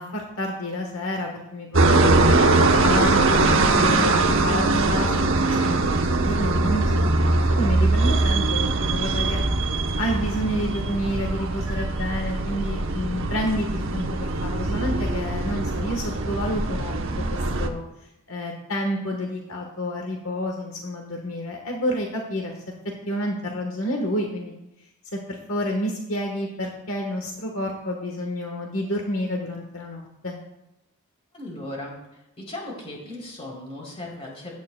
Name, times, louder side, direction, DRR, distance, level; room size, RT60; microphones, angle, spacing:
voice 1, 0.0-2.4 2.8-7.2 7.5-9.4 10.0-17.2 17.6-17.8 18.3-22.5 23.1-24.5 25.1-30.4, equal, 65° left, 1 dB, 1.4 m, -29 dB
sound 1, 1.7-17.7, right 2 dB, 60° right, 0.9 m, -22 dB
voice 2, 31.3-32.0 32.4-34.5, left 1 dB, 30° left, -2 dB, 3.4 m, -36 dB
16.0 x 10.5 x 2.3 m, 0.90 s
head